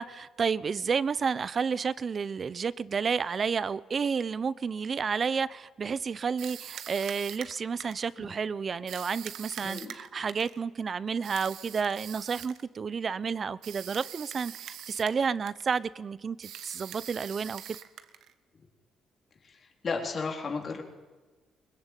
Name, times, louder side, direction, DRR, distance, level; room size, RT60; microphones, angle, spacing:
voice 1, 0.0-17.8, right 6 dB, 45° right, 18 dB, 0.9 m, -31 dB
sound 1, 6.4-8.1 8.9-10.6 11.2-12.6 13.6-15.2 15.5-15.8 16.4-18.3, right 10 dB, 80° right, 1.5 m, -43 dB
voice 2, 9.6-10.0 19.4-20.8, left 4 dB, 45° left, 1 dB, 3.7 m, -34 dB
22.0 x 21.0 x 9.2 m, 1.3 s
cardioid pair, 90°, 0 cm